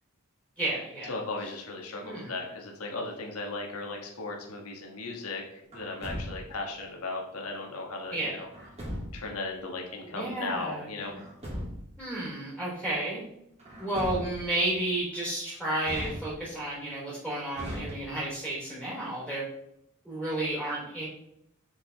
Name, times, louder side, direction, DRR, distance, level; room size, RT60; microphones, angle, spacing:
voice 1, 0.6-1.1 2.0-2.3 8.1-8.4 10.1-11.2 12.0-13.2 13.8-19.4 20.0-21.0, right 1 dB, 5° right, -8 dB, 3.2 m, -32 dB
voice 2, 1.1-5.4 5.7-8.5 9.1-11.1, left 3 dB, 75° left, 1 dB, 1.4 m, -36 dB
Truck, 5.7-6.7 8.5-9.4 11.0-12.0 13.6-14.6 15.8-16.7 17.5-18.4, equal, 30° right, 2.7 m, -38 dB
7.4 x 6.3 x 3.4 m, 0.78 s
head